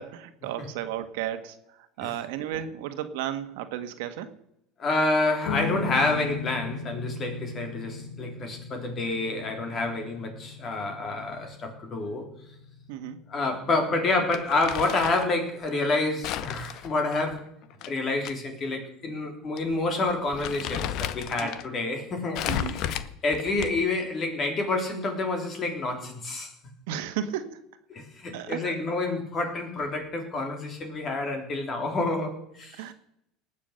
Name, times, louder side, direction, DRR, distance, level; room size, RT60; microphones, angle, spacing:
voice 1, 0.0-1.6 2.0-4.3 12.9-13.2 21.4-21.5 22.5-22.8 26.9-27.6 28.3-28.8 32.7-32.9, right 10 dB, 80° right, 8 dB, 1.5 m, -33 dB
voice 2, 4.8-12.3 13.3-17.4 17.9-22.4 22.7-22.9 23.2-26.5 27.9-32.8, left 2 dB, 30° left, 4 dB, 3.5 m, -28 dB
sound 1, 5.4-18.0, left 4 dB, 80° left, 1.9 m, -39 dB
Crumpling crinkling, 14.3-15.3 16.2-18.3 18.7-18.8 19.6-19.7 20.1-21.7 22.3-24.0, left 11 dB, 55° left, 0.9 m, -33 dB
19.5 x 7.4 x 6.6 m, 0.79 s
supercardioid pair, 135°, 0 cm